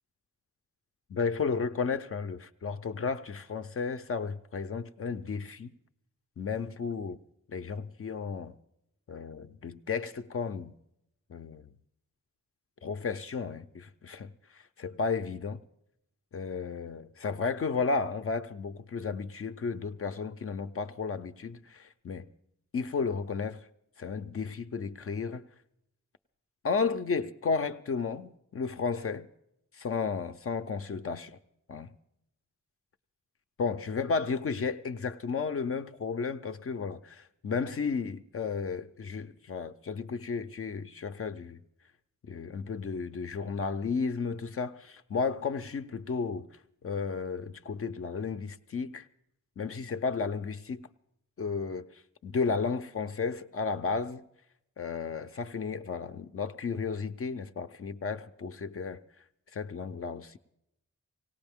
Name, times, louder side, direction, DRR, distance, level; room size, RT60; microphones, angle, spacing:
voice 1, 1.1-5.7 6.4-7.2 7.5-8.5 9.1-10.7 11.3-11.6 12.8-14.3 14.8-15.6 16.3-22.3 22.7-23.7 24.0-25.4 26.6-29.3 29.8-31.4 31.7-31.9 33.6-41.6 42.2-46.5 46.8-49.1 49.6-50.8 51.4-51.9 52.2-54.2 54.8-59.0 59.5-60.4, left 5 dB, 50° left, 0.5 m, -33 dB
18.5 x 17.5 x 3.5 m
wide cardioid pair, 135°, 30 cm